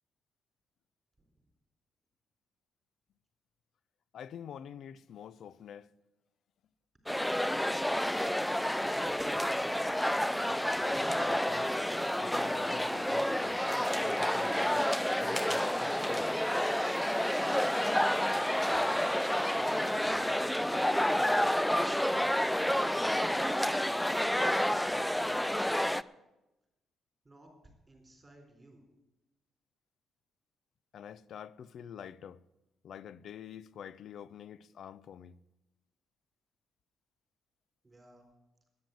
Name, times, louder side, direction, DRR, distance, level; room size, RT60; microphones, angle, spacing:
voice 1, 4.1-5.9 10.7-11.8 12.2-14.9 15.2-16.3 30.9-32.4 32.8-35.4, left 8 dB, 65° left, 0.5 m, -47 dB
sound 1, 7.1-26.0, equal, 5° left, 0.4 m, -29 dB
voice 2, 8.8-10.0 19.5-19.9 20.5-21.5 22.7-24.8 27.2-28.8 37.8-38.3, right 1 dB, 20° right, 4.1 m, -55 dB
10.5 x 9.6 x 9.2 m
cardioid pair, 90°, 0 cm